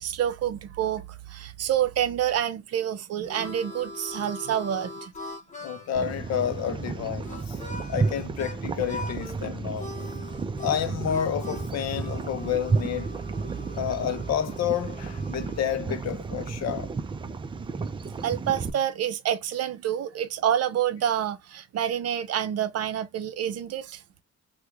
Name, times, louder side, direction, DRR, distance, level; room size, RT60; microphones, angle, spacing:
voice 1, 0.0-5.1 7.8-7.9 13.5-13.7 18.2-24.0, right 10 dB, 60° right, 0.6 m, -28 dB
Harmonica, 2.8-8.6 8.9-9.4 9.8-15.8, left 2 dB, 25° left, 0.9 m, -42 dB
voice 2, 5.6-7.6 7.9-9.9 10.6-13.1 13.7-16.9, left 9 dB, 65° left, 0.6 m, -30 dB
Hot Bubbling Mud, 5.9-18.7, right 4 dB, 20° right, 0.3 m, -32 dB
3.5 x 2.1 x 2.9 m
cardioid pair, 155°, 29 cm